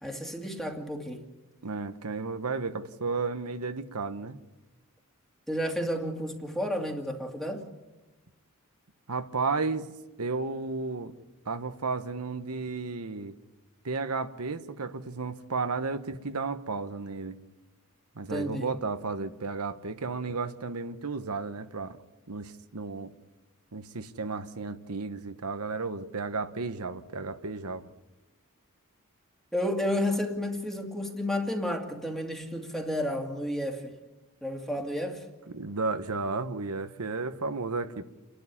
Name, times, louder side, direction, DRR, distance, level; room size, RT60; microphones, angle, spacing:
voice 1, 0.0-1.3 5.5-7.7 18.3-18.7 29.5-34.0 34.4-35.3, left 1 dB, ahead, 2.3 m, -31 dB
voice 2, 1.6-4.4 9.1-9.9 10.2-11.1 11.5-13.3 13.8-17.4 18.1-22.0 22.3-23.1 23.7-27.9 35.5-38.0, right 4 dB, 85° right, 1.1 m, -33 dB
29.0 x 11.5 x 10.0 m
head